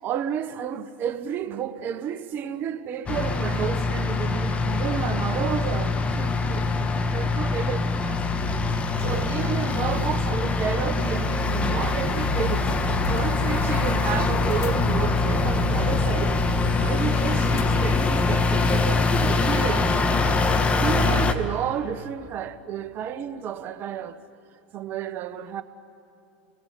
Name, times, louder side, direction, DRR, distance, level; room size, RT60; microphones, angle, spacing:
voice 1, 0.0-8.2 9.0-12.7 13.1-16.4 16.8-19.9 20.8-24.2 24.7-25.6, right 9 dB, 40° right, 1.4 m, -31 dB
sound 1, 3.1-21.3, left 3 dB, 20° left, 1.5 m, -23 dB
sound 2, 11.8-18.0, left 7 dB, 55° left, 1.3 m, -35 dB
29.0 x 21.5 x 8.6 m
supercardioid pair, 120°, 5 cm